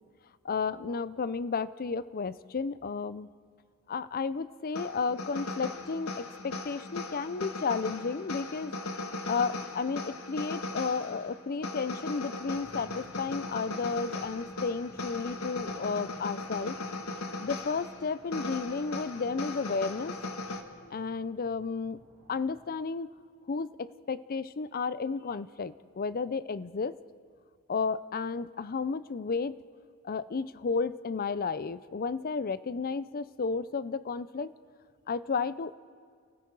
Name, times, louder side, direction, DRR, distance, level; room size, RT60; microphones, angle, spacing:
voice 1, 0.4-3.3 3.9-8.7 9.3-16.8 17.4-20.1 20.9-22.0 22.3-23.1 23.5-27.0 27.7-29.6 30.0-34.5 35.1-35.7, left 4 dB, 40° left, 16 dB, 0.5 m, -32 dB
sound 1, 4.7-20.6, left 2 dB, 70° left, 1.6 m, -38 dB
sound 2, 12.3-22.6, right 1 dB, 60° right, 4.5 m, -57 dB
29.5 x 19.0 x 4.7 m, 2.1 s
head